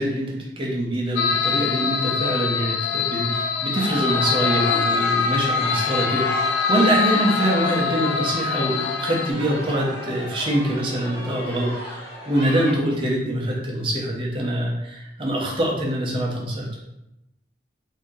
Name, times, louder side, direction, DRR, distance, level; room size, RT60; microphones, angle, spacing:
voice 1, 0.0-16.7, right 1 dB, 30° right, -3 dB, 0.7 m, -24 dB
sound 1, 1.1-9.3, left 6 dB, 80° left, 0.3 m, -24 dB
sound 2, 3.7-12.7, left 1 dB, 60° left, 1.2 m, -34 dB
2.8 x 2.7 x 3.6 m, 0.89 s
head